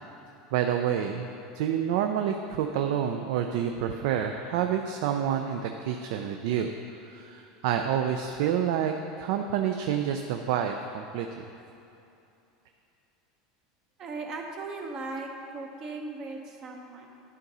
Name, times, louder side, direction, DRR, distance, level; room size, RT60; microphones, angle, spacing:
voice 1, 0.5-1.3 1.5-6.7 7.1-11.4, right 9 dB, 65° right, 5 dB, 0.4 m, -28 dB
voice 2, 14.0-17.1, right 3 dB, 30° right, 2 dB, 0.6 m, -38 dB
11.0 x 3.9 x 5.4 m, 2.8 s
supercardioid pair, 160°, 2 cm